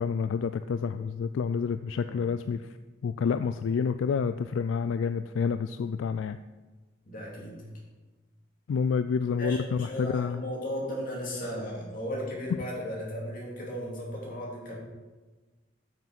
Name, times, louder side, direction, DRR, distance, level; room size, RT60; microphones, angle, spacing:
voice 1, 0.0-2.6 3.0-6.4 8.7-10.4, left 6 dB, 75° left, 11 dB, 0.3 m, -28 dB
voice 2, 7.1-7.6 9.4-14.8, equal, 45° left, -3 dB, 2.6 m, -36 dB
9.0 x 5.9 x 5.9 m, 1.3 s
head